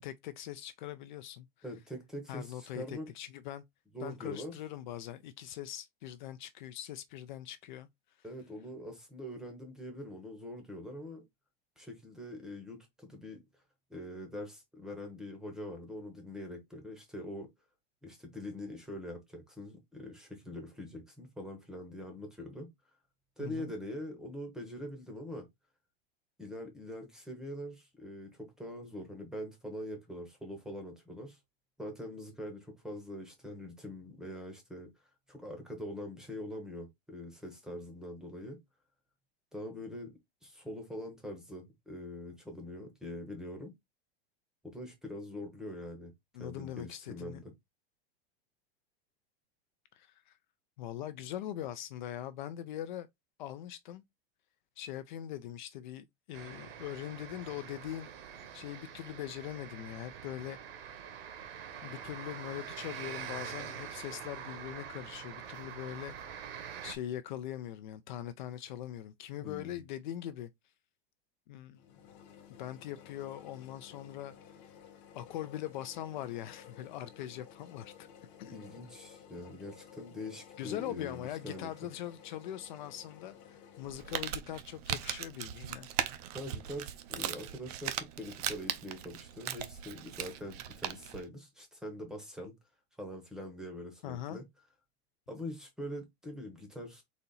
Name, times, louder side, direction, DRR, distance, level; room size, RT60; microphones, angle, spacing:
voice 1, 0.0-1.5 2.3-3.6 4.0-7.9 23.4-23.7 46.3-47.4 49.9-50.4 50.8-53.1 53.4-54.0 54.8-58.1 58.5-60.6 60.8-61.0 61.8-70.5 71.5-71.8 72.6-74.3 75.1-78.1 78.4-78.5 80.6-85.9 94.0-94.4, left 12 dB, 50° left, 0.4 m, -42 dB
voice 2, 1.6-3.1 3.9-4.5 8.2-11.2 11.8-13.4 13.9-17.5 18.0-22.7 23.4-25.5 26.4-31.4 31.8-34.9 35.3-38.6 39.5-43.7 44.6-46.1 46.4-47.5 69.4-69.8 78.5-81.9 86.3-92.5 93.0-94.4 95.3-97.0, left 1 dB, ahead, 0.8 m, -43 dB
sound 1, 56.3-66.9, right 8 dB, 70° right, 1.2 m, -45 dB
sound 2, 71.7-84.3, left 8 dB, 35° left, 0.9 m, -55 dB
Crumpling crinkling, 83.8-91.2, right 11 dB, 40° right, 0.5 m, -39 dB
4.1 x 2.8 x 3.9 m
supercardioid pair, 170°, 30 cm